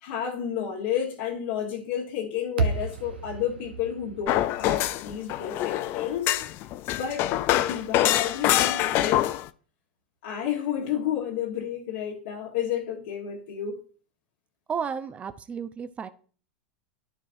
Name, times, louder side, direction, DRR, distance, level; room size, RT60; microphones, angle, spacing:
voice 1, 0.0-6.3 7.0-9.3 10.2-13.8, left 9 dB, 65° left, 1.5 m, -31 dB
sound 1, 2.6-6.9, right 3 dB, 85° right, 1.2 m, -33 dB
sound 2, 4.3-9.5, left 14 dB, 45° left, 0.5 m, -25 dB
voice 2, 14.7-16.1, right 6 dB, 25° right, 0.7 m, -33 dB
13.5 x 4.8 x 2.7 m
hypercardioid pair, 105°, 5 cm